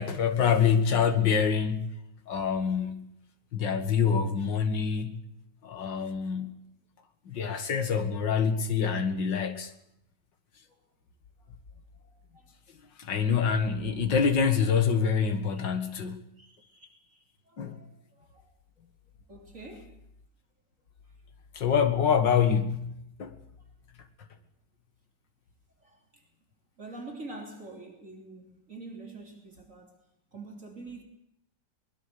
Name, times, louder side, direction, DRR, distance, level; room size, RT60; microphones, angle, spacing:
voice 1, 0.0-1.9 2.3-3.1 3.5-5.2 5.6-6.6 7.3-9.7 13.0-16.2 17.6-17.8 21.5-22.9 23.2-23.4, left 6 dB, 90° left, 2.5 m, -26 dB
voice 2, 12.0-12.5 15.5-15.9 16.4-17.9 18.2-18.5 19.3-19.9 25.8-26.2 26.8-30.0 30.3-31.0, right 2 dB, 45° right, 3.8 m, -46 dB
22.5 x 21.0 x 6.9 m
omnidirectional pair, 1.9 m